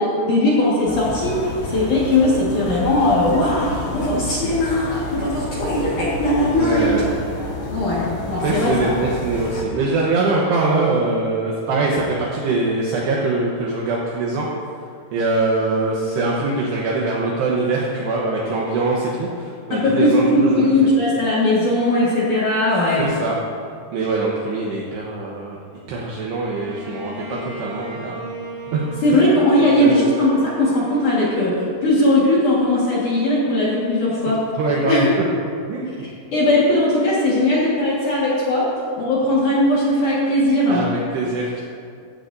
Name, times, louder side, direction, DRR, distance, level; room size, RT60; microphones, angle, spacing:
voice 1, 0.0-7.0 7.7-8.9 19.7-23.1 29.0-34.4 34.9-35.1 36.0-38.7 39.0-40.9, left 1 dB, 55° left, -7 dB, 2.5 m, -19 dB
sound 1, 0.8-9.6, left 1 dB, 85° left, 4.9 m, -30 dB
voice 2, 6.5-7.2 8.4-14.5 15.1-20.7 23.0-23.4 23.9-25.6 25.9-28.2 28.7-28.8 29.6-30.0 34.3-35.2 35.7-35.9 40.7-41.6, right 3 dB, 70° right, -3 dB, 2.8 m, -23 dB
Bowed string instrument, 26.4-32.2, right 4 dB, 45° right, 3.6 m, -36 dB
15.5 x 14.0 x 2.7 m, 2.3 s
omnidirectional pair, 5.6 m